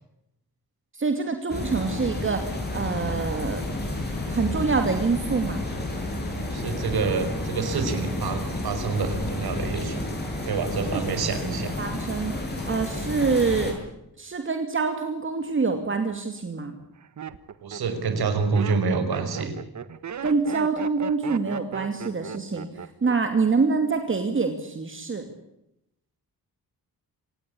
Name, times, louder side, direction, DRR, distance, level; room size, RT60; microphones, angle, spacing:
voice 1, 0.9-3.6 4.3-5.6 10.9-11.0 11.4-13.7 14.2-16.8 20.2-22.7 23.0-25.3, right 4 dB, 35° right, 6 dB, 2.6 m, -26 dB
sound 1, 1.5-13.7, left 2 dB, 25° left, 7.8 m, -31 dB
voice 2, 6.4-10.0 10.4-11.8 17.6-19.5, right 4 dB, 80° right, 8 dB, 5.4 m, -27 dB
Laughter, 15.7-16.2 16.8-23.4 23.7-24.2, right 7 dB, 50° right, 1.4 m, -37 dB
26.0 x 19.0 x 8.6 m, 0.84 s
wide cardioid pair, 175°, 37 cm